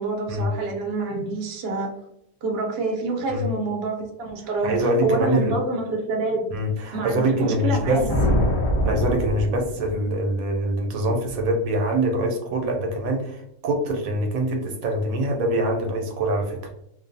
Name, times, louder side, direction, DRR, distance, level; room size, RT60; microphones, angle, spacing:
voice 1, 0.0-1.9 2.4-6.6 6.9-8.2, right 2 dB, 60° right, 1 dB, 0.7 m, -27 dB
voice 2, 4.6-5.6 6.5-8.0 8.8-16.7, right 1 dB, 80° right, 2 dB, 1.0 m, -24 dB
sound 1, 7.7-10.2, equal, 40° left, 1.0 m, -24 dB
2.4 x 2.2 x 2.5 m, 0.77 s
omnidirectional pair, 1.4 m